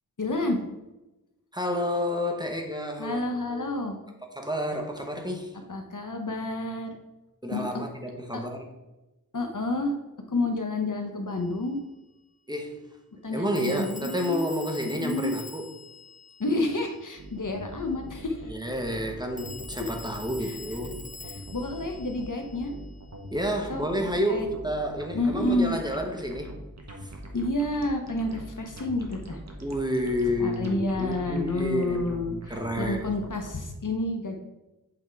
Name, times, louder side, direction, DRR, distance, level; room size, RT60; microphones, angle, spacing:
voice 1, 0.2-0.6 3.0-4.0 5.7-6.9 7.5-7.8 8.3-8.4 9.3-9.9 10.3-11.8 13.2-14.4 14.8-15.3 16.4-18.5 20.4-20.6 21.3-22.7 23.7-24.5 25.1-25.7 27.3-29.4 30.4-34.4, left 2 dB, 55° left, 4 dB, 0.9 m, -29 dB
voice 2, 1.5-3.8 4.3-5.6 7.4-8.7 12.5-12.8 13.3-15.6 18.5-21.0 23.3-26.5 27.0-27.1 29.6-33.1, equal, 10° right, 2 dB, 1.1 m, -30 dB
Telephone, 11.3-11.4 13.5-17.2 19.4-23.1, left 3 dB, 20° left, 0.4 m, -45 dB
sound 1, 17.2-33.5, right 1 dB, 45° right, 1.2 m, -43 dB
7.8 x 3.5 x 4.7 m, 1.0 s
wide cardioid pair, 45°, 38 cm